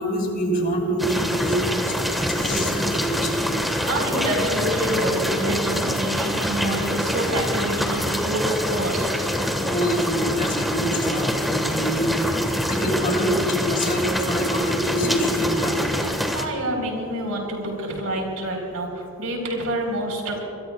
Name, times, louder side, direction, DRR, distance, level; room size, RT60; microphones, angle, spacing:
voice 1, 0.0-3.5 9.7-12.3 12.7-15.9, equal, 40° left, 1 dB, 2.8 m, -25 dB
sound 1, 1.0-16.5, equal, ahead, 1.4 m, -25 dB
voice 2, 3.9-9.3 16.3-20.4, right 1 dB, 85° right, 1 dB, 4.2 m, -27 dB
25.5 x 21.5 x 2.3 m, 2.8 s
head